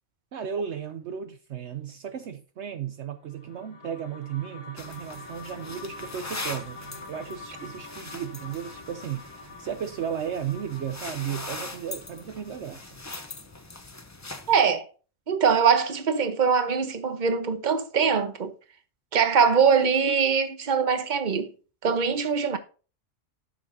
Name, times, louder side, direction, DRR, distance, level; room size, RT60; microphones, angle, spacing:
voice 1, 0.3-12.9, right 8 dB, 65° right, 1.0 m, -35 dB
sound 1, 3.2-13.5, left 3 dB, 90° left, 2.5 m, -46 dB
sound 2, 4.8-14.6, left 2 dB, 20° left, 0.6 m, -41 dB
voice 2, 14.5-14.9 15.3-18.5 19.1-21.5 21.8-22.6, right 6 dB, 40° right, 1.1 m, -22 dB
12.5 x 6.6 x 2.7 m
omnidirectional pair, 1.3 m